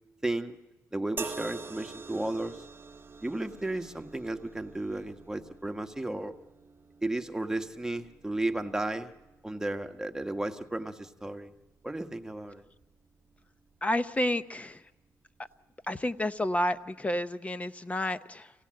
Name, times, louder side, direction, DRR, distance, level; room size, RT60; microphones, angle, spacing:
voice 1, 0.2-0.6 0.9-2.6 3.2-6.3 7.0-9.1 9.4-11.5 11.8-12.7, right 2 dB, 10° right, 7 dB, 1.3 m, -34 dB
sound 1, 1.2-14.5 15.4-15.6, right 4 dB, 35° right, 1.0 m, -47 dB
voice 2, 13.8-14.8 15.4-15.5 15.9-18.5, left 1 dB, 20° left, 13 dB, 0.8 m, -30 dB
26.5 x 17.5 x 7.7 m, 1.1 s
cardioid pair, 75°, 6 cm